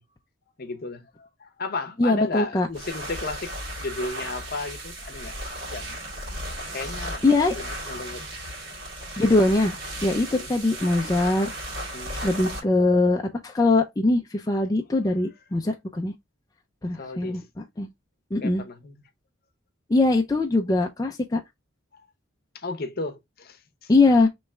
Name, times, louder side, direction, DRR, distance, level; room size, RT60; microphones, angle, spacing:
voice 1, 0.6-3.5 3.8-5.3 5.7-6.0 6.7-7.2 7.5-8.3 9.0-9.1 10.2-10.5 11.9-12.3 17.0-17.5 18.4-18.9 22.5-24.2, left 3 dB, 50° left, 0.7 m, -34 dB
voice 2, 2.0-2.7 6.8-6.9 7.2-7.5 9.2-11.5 12.1-16.1 16.8-17.9 18.3-18.6 19.9-21.4 23.9-24.3, left 2 dB, 20° left, 0.4 m, -22 dB
sound 1, 2.7-12.6, right 1 dB, 65° right, 2.0 m, -35 dB
3.5 x 3.1 x 4.2 m
head